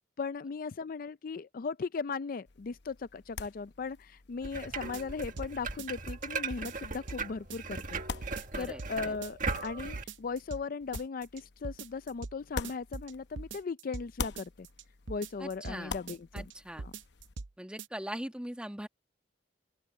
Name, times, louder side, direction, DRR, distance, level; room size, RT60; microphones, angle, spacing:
voice 1, 0.2-8.0 8.3-14.7 15.1-16.5 16.8-16.9, left 5 dB, 50° left, 0.4 m, -38 dB
sound 1, 2.5-13.6 13.9-17.3, left 4 dB, 65° left, 0.8 m, -46 dB
sound 2, 4.4-10.0, right 4 dB, 45° right, 1.6 m, -38 dB
sound 3, 4.9-5.5 5.8-7.2 7.5-8.0 8.2-8.9 9.2-9.7 9.9-10.6 10.9-11.4 11.6-12.4 12.6-14.1 14.4-14.8 15.1-15.8 16.1-16.5 16.8-17.5 17.8-17.9, right 4 dB, 80° right, 0.7 m, -42 dB
voice 2, 8.5-9.1 15.4-15.9 16.3-16.8 17.6-18.9, right 1 dB, 5° right, 1.3 m, -41 dB
open air
head